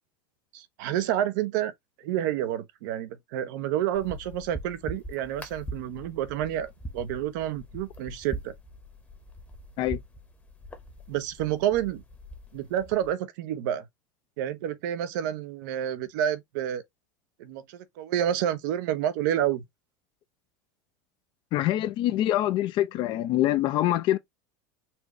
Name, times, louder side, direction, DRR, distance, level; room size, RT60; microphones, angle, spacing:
voice 1, 0.5-1.7 2.0-8.5 11.1-12.0 12.5-13.9 14.4-16.8 17.4-19.6, right 11 dB, 70° right, 0.7 m, -29 dB
sound 1, 3.9-13.1, right 1 dB, 15° left, 1.0 m, -42 dB
voice 2, 21.5-24.2, left 14 dB, 50° left, 0.5 m, -25 dB
4.3 x 2.3 x 3.0 m
supercardioid pair, 115°, 10 cm